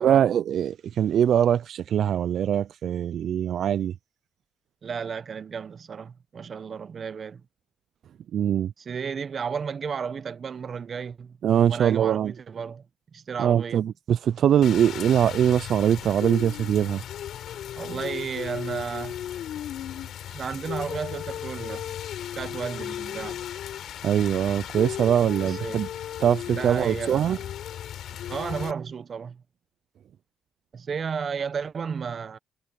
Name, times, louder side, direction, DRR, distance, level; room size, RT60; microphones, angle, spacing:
voice 1, 0.0-3.9 8.3-8.7 11.4-12.3 13.4-17.0 24.0-25.9 26.2-27.4, right 9 dB, 65° right, 0.4 m, -22 dB
voice 2, 4.8-7.4 8.8-11.4 11.7-12.9 13.1-13.9 17.8-19.2 20.3-21.8 22.4-23.5 25.4-25.8 26.5-27.5 28.3-29.4 30.7-32.4, right 6 dB, 45° right, 0.8 m, -33 dB
Rain, 14.6-28.7, left 10 dB, 75° left, 3.7 m, -35 dB
cardioid pair, 90°, 0 cm